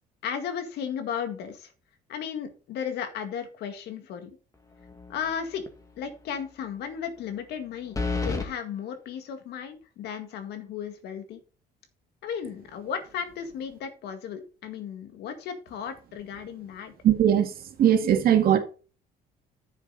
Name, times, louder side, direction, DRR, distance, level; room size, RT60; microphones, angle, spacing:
voice 1, 0.2-1.7 2.1-4.4 5.1-5.6 6.0-8.0 8.2-11.4 12.2-16.9, left 7 dB, 75° left, 1.9 m, -35 dB
sound 1, 4.8-5.3 5.7-5.8 7.9-8.5, left 3 dB, 20° left, 1.9 m, -29 dB
voice 2, 17.0-18.6, right 10 dB, 60° right, 2.0 m, -20 dB
10.0 x 7.2 x 4.0 m
cardioid pair, 110°, 17 cm